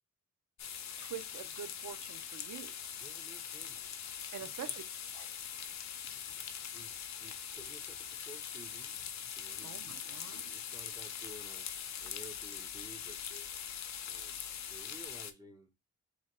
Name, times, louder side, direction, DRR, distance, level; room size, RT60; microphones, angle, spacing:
sound 1, 0.6-15.3, left 8 dB, 60° left, 0.5 m, -42 dB
voice 1, 1.0-2.7 4.3-4.8 5.1-5.3 9.6-10.5, right 9 dB, 70° right, 0.6 m, -46 dB
voice 2, 3.0-3.8 4.4-4.7 6.7-9.1 9.4-11.7 12.0-13.2 14.1-14.4 14.7-15.7, right 1 dB, 15° right, 0.5 m, -54 dB
2.9 x 2.8 x 4.4 m
wide cardioid pair, 175°, 31 cm